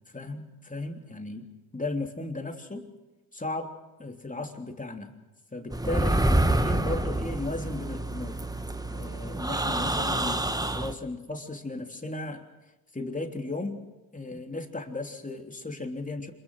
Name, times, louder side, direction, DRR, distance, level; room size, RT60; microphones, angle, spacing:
voice 1, 0.1-1.5 1.7-2.9 3.3-3.7 4.0-5.1 5.5-8.4 8.9-10.5 10.7-12.5 12.9-13.8 14.1-16.3, left 2 dB, 15° left, 4 dB, 3.4 m, -35 dB
sound 1, 5.7-10.9, right 1 dB, 10° right, 1.5 m, -27 dB
27.0 x 22.0 x 6.4 m, 1.1 s
supercardioid pair, 60°, 47 cm